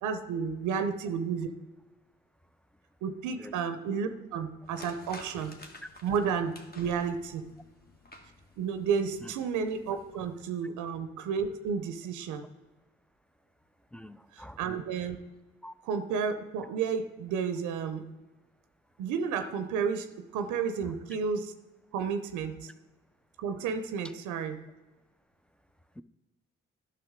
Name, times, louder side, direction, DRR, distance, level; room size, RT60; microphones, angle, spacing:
voice 1, 0.0-1.5 3.0-5.5 6.0-7.5 8.6-12.4 14.3-15.2 15.8-18.1 19.0-21.5 21.9-22.7 23.4-24.6, right 6 dB, 85° right, 9 dB, 0.6 m, -32 dB
sound 1, 4.6-10.5, left 2 dB, 30° left, 1.4 m, -52 dB
voice 2, 13.9-14.6 15.6-15.7 26.0-26.1, equal, 5° left, 14 dB, 0.4 m, -46 dB
11.0 x 5.9 x 3.6 m, 1.1 s
supercardioid pair, 45°, 30 cm